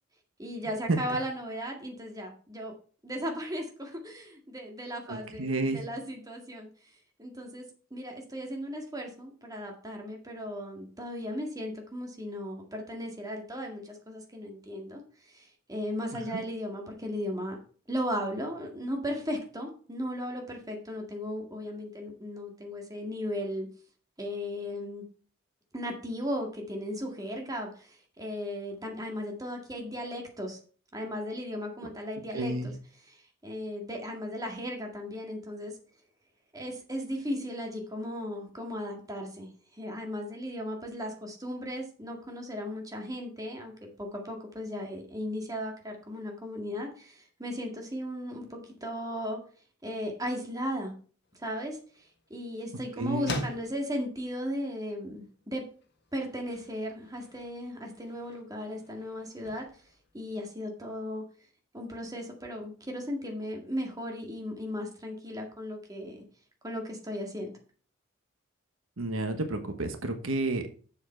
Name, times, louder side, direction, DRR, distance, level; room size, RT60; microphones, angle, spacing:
voice 1, 0.4-2.7 3.0-6.7 7.2-7.7 7.9-17.6 17.9-23.7 24.2-25.0 25.7-30.6 30.9-32.7 33.1-35.8 36.5-49.4 49.8-50.9 51.4-55.7 56.1-59.7 60.1-61.2 61.7-66.2 66.6-67.5, equal, 20° right, 1 dB, 1.9 m, -36 dB
voice 2, 5.1-5.8 32.3-32.7 53.0-53.4 69.0-70.7, right 2 dB, 80° right, 7 dB, 1.1 m, -30 dB
sound 1, 51.2-61.0, left 2 dB, 55° left, 1.6 m, -45 dB
7.2 x 7.2 x 4.4 m, 0.41 s
head